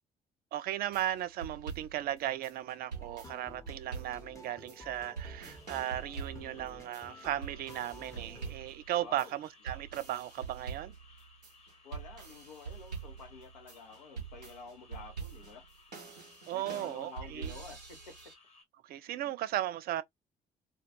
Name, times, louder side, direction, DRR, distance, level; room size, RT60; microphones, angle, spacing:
voice 1, 0.5-10.9 16.5-17.5 18.8-20.0, right 13 dB, 50° right, 0.4 m, -36 dB
sound 1, 0.9-18.3, right 5 dB, 90° right, 0.7 m, -45 dB
sound 2, 2.9-8.6, left 2 dB, 15° left, 0.6 m, -51 dB
sound 3, 5.4-18.7, left 3 dB, 30° left, 1.0 m, -61 dB
voice 2, 9.0-9.4 11.8-15.6 16.5-18.1 19.1-19.4, left 4 dB, 80° left, 0.6 m, -50 dB
2.2 x 2.2 x 2.7 m
figure-of-eight pair, 45°, 21 cm